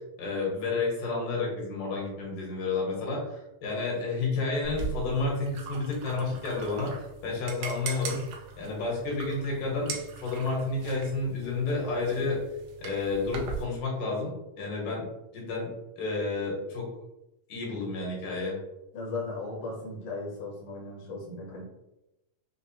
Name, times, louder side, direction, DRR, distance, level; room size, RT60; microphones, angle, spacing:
voice 1, 0.2-8.2 8.6-12.4 12.8-15.1 15.3-15.7 16.0-16.9 17.5-18.6, left 3 dB, 80° left, -3 dB, 2.8 m, -30 dB
sound 1, 4.6-13.6, right 5 dB, 80° right, 2.1 m, -40 dB
voice 2, 18.9-21.6, left 3 dB, 60° left, -3 dB, 1.1 m, -37 dB
6.0 x 2.1 x 2.8 m, 0.92 s
omnidirectional pair, 3.7 m